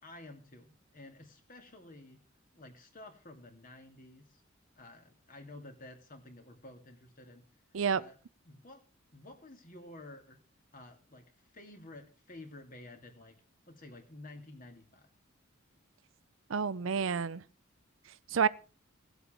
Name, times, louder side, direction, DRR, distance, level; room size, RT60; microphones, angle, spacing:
voice 1, 0.0-2.2 2.5-4.4 4.8-7.4 7.9-8.2 8.4-8.8 9.1-10.4 10.7-13.4 13.7-15.1, left 2 dB, 45° left, 2.6 m, -51 dB
voice 2, 16.5-17.4 18.3-18.5, right 6 dB, 75° right, 0.6 m, -29 dB
17.5 x 8.1 x 4.4 m
head